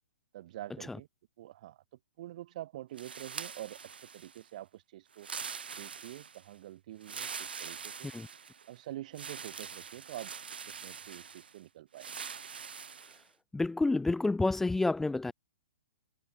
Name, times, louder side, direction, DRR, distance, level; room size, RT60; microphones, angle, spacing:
voice 1, 0.3-1.1 1.4-1.8 2.2-3.8 4.1-5.3 5.8-8.1 8.7-12.2, right 14 dB, 50° right, 3.4 m, -46 dB
sound 1, 3.0-4.5 5.1-6.5 7.0-8.7 9.1-11.5 12.0-13.2, right 6 dB, 75° right, 2.7 m, -44 dB
voice 2, 13.5-15.3, left 2 dB, 5° left, 1.5 m, -29 dB
hypercardioid pair, 125°, 5 cm